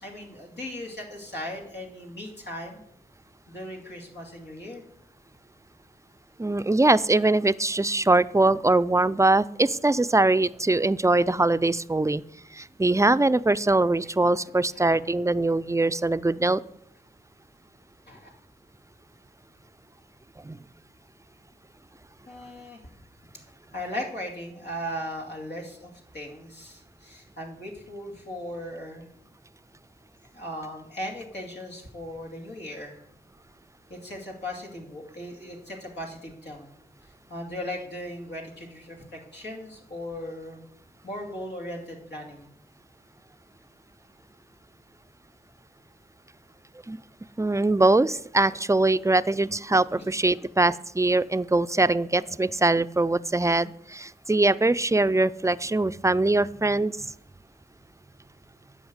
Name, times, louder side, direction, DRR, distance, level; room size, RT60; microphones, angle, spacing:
voice 1, 0.0-2.8 3.5-4.8 14.7-15.1 18.1-18.3 22.3-22.8 23.7-29.1 30.3-33.0 33.9-36.7 37.3-40.6 41.0-42.5 49.9-50.1, left 1 dB, 85° left, -1 dB, 2.5 m, -38 dB
voice 2, 6.4-12.2 12.5-16.6 20.4-20.6 46.9-47.0 47.4-57.1, right 2 dB, 15° right, 15 dB, 0.4 m, -22 dB
10.0 x 5.6 x 8.1 m, 0.73 s
cardioid pair, 40°, 17 cm